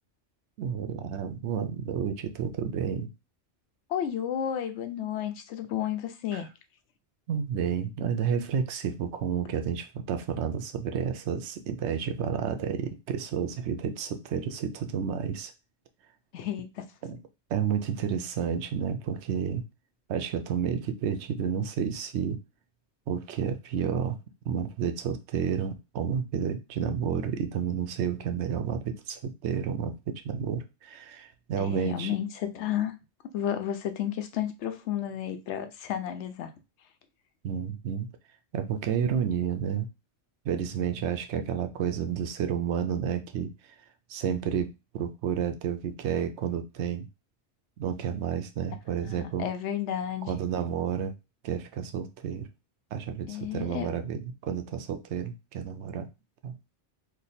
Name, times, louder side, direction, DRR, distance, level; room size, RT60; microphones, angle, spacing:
voice 1, 0.6-3.1 6.3-6.4 7.3-15.5 17.0-17.2 17.5-19.6 20.1-22.4 23.1-24.2 24.5-32.2 37.4-38.1 38.5-39.9 40.4-43.5 44.1-47.1 47.8-49.5 50.3-51.1 51.4-52.5 52.9-56.1 56.4-56.5, right 7 dB, 75° right, 0.9 m, -30 dB
voice 2, 3.9-6.5 16.3-16.8 31.6-33.0 33.3-36.5 49.0-50.4 53.3-53.9, left 10 dB, 80° left, 0.9 m, -32 dB
3.2 x 2.2 x 4.1 m
omnidirectional pair, 1.2 m